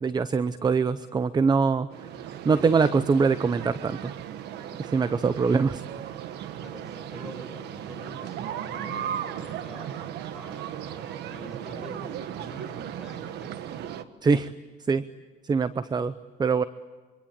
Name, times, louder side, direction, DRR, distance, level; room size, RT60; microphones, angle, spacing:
voice 1, 0.0-1.9 2.4-4.1 4.8-5.8 14.2-14.5 14.9-15.0 15.4-16.1 16.4-16.6, right 5 dB, 25° right, 15 dB, 0.7 m, -23 dB
sound 1, 1.9-14.0, right 10 dB, 80° right, 1.5 m, -36 dB
voice 2, 6.6-13.6, left 1 dB, 5° right, 5 dB, 7.4 m, -46 dB
26.5 x 25.0 x 8.8 m, 1.4 s
cardioid pair, 110°, 17 cm